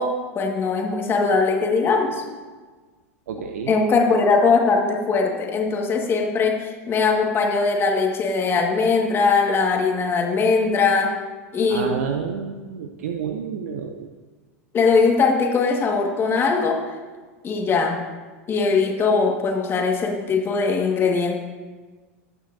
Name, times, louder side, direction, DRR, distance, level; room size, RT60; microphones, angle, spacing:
voice 1, 0.0-2.2 3.7-11.2 11.5-11.9 14.7-16.8 17.4-18.0 18.5-21.4, left 4 dB, 30° left, 1 dB, 1.8 m, -20 dB
voice 2, 3.3-3.7 11.7-14.1, right 7 dB, 75° right, 5 dB, 0.6 m, -29 dB
18.0 x 6.4 x 2.7 m, 1.4 s
hypercardioid pair, 100°, 8 cm